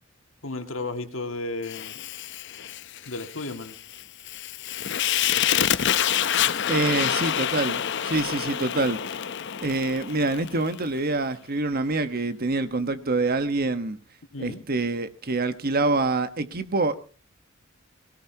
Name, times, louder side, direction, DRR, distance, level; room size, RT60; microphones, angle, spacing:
voice 1, 0.4-2.0 3.1-3.8 14.3-14.7, left 2 dB, 80° left, 2.2 m, -33 dB
Fire, 1.6-10.9, left 10 dB, 65° left, 0.7 m, -27 dB
voice 2, 6.7-9.0 9.6-14.0 14.4-17.0, right 2 dB, 50° right, 1.3 m, -26 dB
22.0 x 17.0 x 2.9 m
head